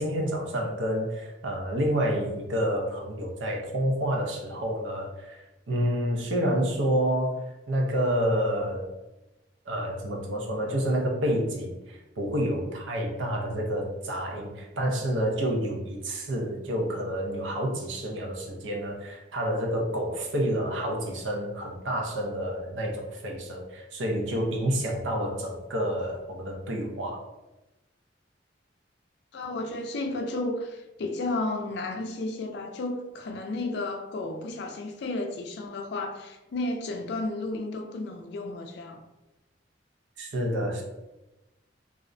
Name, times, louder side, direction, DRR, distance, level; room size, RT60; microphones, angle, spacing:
voice 1, 0.0-8.9 9.7-27.2 40.2-40.8, equal, 90° right, 0.5 m, -29 dB
voice 2, 29.3-39.0, left 2 dB, 65° left, 0.4 m, -33 dB
2.4 x 2.0 x 2.5 m
head